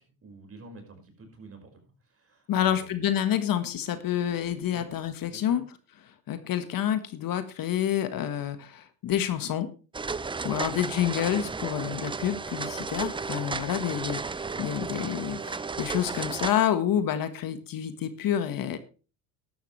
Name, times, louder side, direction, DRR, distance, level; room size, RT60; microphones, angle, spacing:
voice 1, 0.0-3.2 4.7-4.9 5.3-5.6, right 3 dB, 30° right, 4 dB, 5.2 m, -49 dB
voice 2, 2.5-5.6 6.3-9.7 10.4-18.8, left 10 dB, 50° left, 10 dB, 1.6 m, -28 dB
sound 1, 9.9-16.5, right 4 dB, 10° right, 0.6 m, -34 dB
14.0 x 12.0 x 3.3 m, 0.34 s
supercardioid pair, 85°, 43 cm